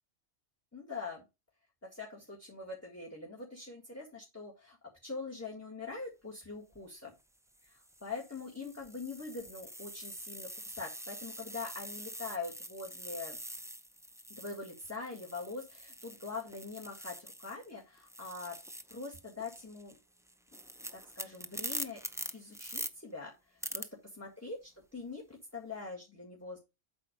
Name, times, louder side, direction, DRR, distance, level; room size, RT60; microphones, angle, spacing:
voice 1, 0.7-1.2 1.9-4.8 5.0-7.1 7.6-13.4 14.3-18.6 18.9-19.9 20.9-22.0 22.3-23.9 24.2-26.6, left 4 dB, 15° left, -2 dB, 1.8 m, -43 dB
sound 1, 6.5-6.8 7.5-17.7 18.0-22.9 23.6-23.9, right 1 dB, 5° right, 0.4 m, -45 dB
8.4 x 5.6 x 5.1 m, 0.25 s
omnidirectional pair, 1.2 m